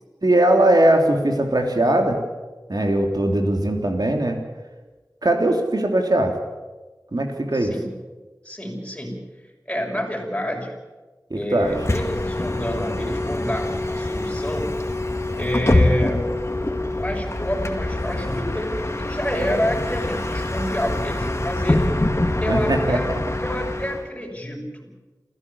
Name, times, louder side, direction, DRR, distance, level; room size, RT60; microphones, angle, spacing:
voice 1, 0.2-2.2 2.7-4.4 5.2-6.4 7.1-7.7 11.3-11.8 22.4-23.0, right 1 dB, 70° right, 3 dB, 3.3 m, -20 dB
voice 2, 7.5-7.9 8.4-9.2 9.7-10.8 11.3-14.8 15.4-16.4 16.9-22.0 22.4-23.1 23.4-24.9, equal, 15° left, -1 dB, 6.2 m, -28 dB
Bus, 11.6-24.1, left 1 dB, 40° left, 2.0 m, -25 dB
28.0 x 15.0 x 7.1 m, 1.2 s
wide cardioid pair, 50°, 7 cm